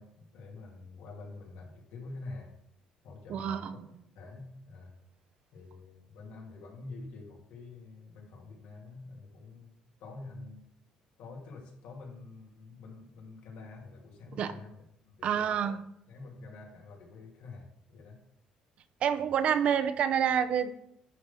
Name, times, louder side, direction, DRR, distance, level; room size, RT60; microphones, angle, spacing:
voice 1, 0.0-2.5 3.0-3.8 4.1-4.9 5.5-9.7 10.0-10.7 11.2-14.7 15.1-15.5 16.1-18.2, left 3 dB, 75° left, -1 dB, 2.7 m, -47 dB
voice 2, 3.3-3.9 14.4-14.5 15.2-15.8 19.0-20.7, right 8 dB, 50° right, 10 dB, 0.6 m, -28 dB
11.0 x 3.9 x 5.9 m, 0.75 s
cardioid pair, 135°, 3 cm